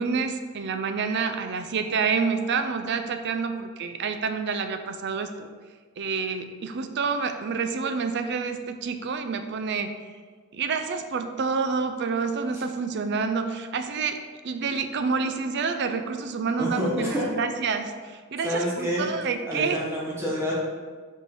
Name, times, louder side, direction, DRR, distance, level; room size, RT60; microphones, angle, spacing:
voice 1, 0.0-5.5 6.0-9.9 10.5-14.2 14.4-19.8, right 5 dB, 50° right, 8 dB, 0.5 m, -28 dB
voice 2, 16.6-17.3 18.4-19.0 19.5-20.5, equal, 10° right, -6 dB, 1.3 m, -27 dB
5.1 x 4.5 x 4.8 m, 1.5 s
head